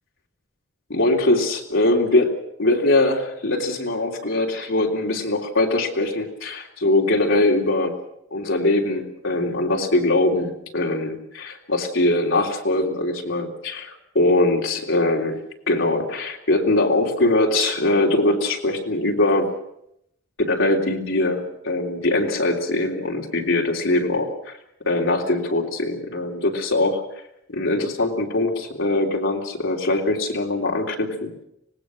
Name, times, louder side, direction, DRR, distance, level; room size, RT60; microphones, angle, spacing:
voice 1, 0.9-8.0 8.3-15.4 15.7-19.5 20.4-24.5 24.8-27.0 27.5-31.4, left 2 dB, 65° left, 0 dB, 3.2 m, -22 dB
25.0 x 19.0 x 6.3 m, 0.78 s
head